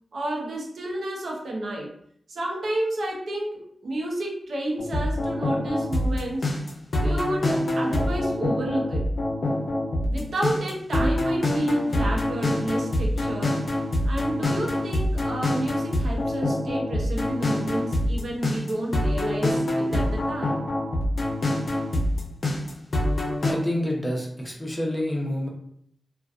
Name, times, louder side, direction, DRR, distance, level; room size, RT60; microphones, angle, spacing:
voice 1, 0.1-1.9 2.3-6.5 7.0-9.1 10.1-13.6 14.0-20.6, right 1 dB, 75° right, -2 dB, 0.6 m, -30 dB
sound 1, 4.8-23.5, left 1 dB, 60° left, 0.5 m, -25 dB
voice 2, 23.4-25.5, left 1 dB, 15° left, -1 dB, 0.7 m, -28 dB
2.4 x 2.2 x 2.4 m, 0.66 s
cardioid pair, 70°, 0 cm